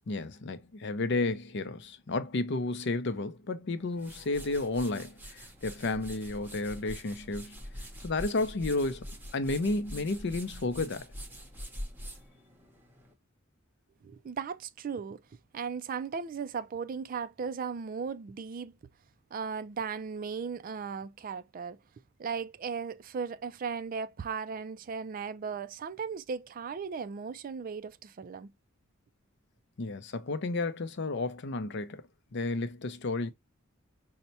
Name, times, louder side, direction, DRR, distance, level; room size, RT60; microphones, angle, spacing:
voice 1, 0.1-7.6 8.0-9.0 9.3-11.1 29.8-32.0 32.3-33.3, left 2 dB, 55° left, 0.5 m, -32 dB
sound 1, 3.8-13.1, equal, 10° right, 0.8 m, -45 dB
voice 2, 14.0-15.2 15.5-18.7 19.3-21.8 22.2-28.5, right 6 dB, 40° right, 0.3 m, -37 dB
5.4 x 2.1 x 2.6 m
head